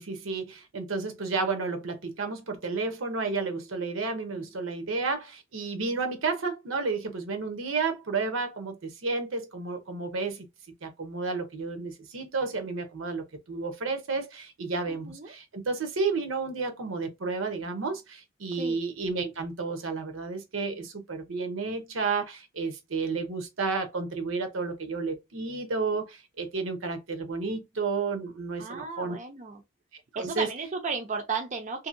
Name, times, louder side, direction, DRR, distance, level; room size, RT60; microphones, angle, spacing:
voice 1, 0.0-10.4 10.8-29.2 30.2-30.5, right 4 dB, 80° right, 0.8 m, -31 dB
voice 2, 14.9-15.3 18.6-18.8 28.6-29.6 30.1-31.9, right 4 dB, 40° right, 0.5 m, -34 dB
2.7 x 2.6 x 2.6 m
head